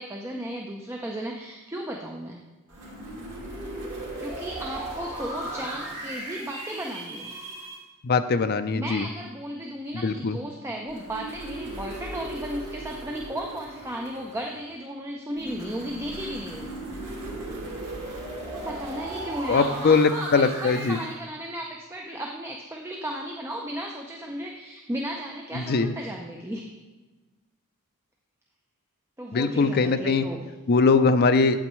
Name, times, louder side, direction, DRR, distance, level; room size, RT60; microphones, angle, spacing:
voice 1, 0.0-2.4 4.2-7.4 8.7-16.7 18.5-26.7 29.2-30.5, right 1 dB, 10° right, 0 dB, 0.6 m, -35 dB
sound 1, 2.7-7.8 10.9-14.7 15.4-21.1, right 1 dB, 55° right, 2.9 m, -37 dB
voice 2, 8.0-9.1 9.9-10.4 19.5-21.0 25.5-25.9 29.3-30.2 30.7-31.6, left 4 dB, 45° left, 9 dB, 0.4 m, -21 dB
8.7 x 8.3 x 3.1 m, 1.2 s
head